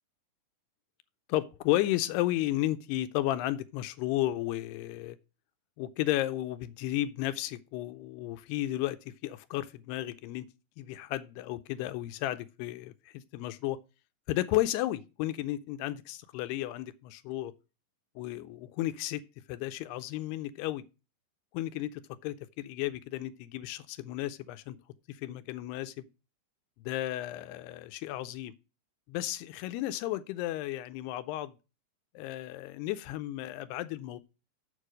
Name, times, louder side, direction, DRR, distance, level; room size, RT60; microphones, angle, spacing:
voice 1, 1.3-5.2 5.8-10.5 10.8-13.8 14.3-17.5 18.2-19.2 19.5-20.8 21.5-24.8 25.1-26.1 26.8-28.5 29.1-31.5 32.2-34.2, left 15 dB, 80° left, 2.6 m, -33 dB
7.4 x 6.5 x 6.3 m
omnidirectional pair, 4.8 m